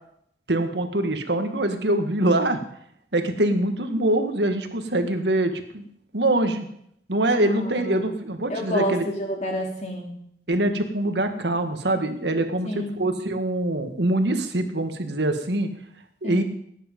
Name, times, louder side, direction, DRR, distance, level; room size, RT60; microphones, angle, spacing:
voice 1, 0.5-2.6 3.1-5.9 6.1-6.7 7.1-9.0 10.5-15.7 16.2-16.4, right 1 dB, 80° right, 7 dB, 1.8 m, -24 dB
voice 2, 7.3-8.1 8.5-10.1 12.7-13.0 16.2-16.4, equal, 40° left, 1 dB, 3.3 m, -29 dB
18.5 x 10.0 x 5.4 m, 0.70 s
head